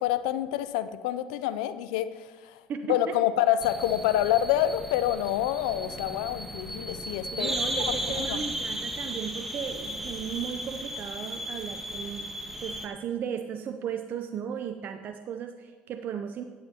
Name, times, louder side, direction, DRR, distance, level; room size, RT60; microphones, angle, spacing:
voice 1, 0.0-2.6 2.9-7.5 7.9-8.0 8.3-8.4, left 12 dB, 85° left, 13 dB, 0.4 m, -27 dB
sound 1, 3.6-12.9, equal, 5° right, 1.3 m, -35 dB
voice 2, 7.3-12.3 12.6-16.4, right 8 dB, 55° right, 7 dB, 0.6 m, -35 dB
13.0 x 8.8 x 2.9 m, 1.4 s
hypercardioid pair, 75°, 4 cm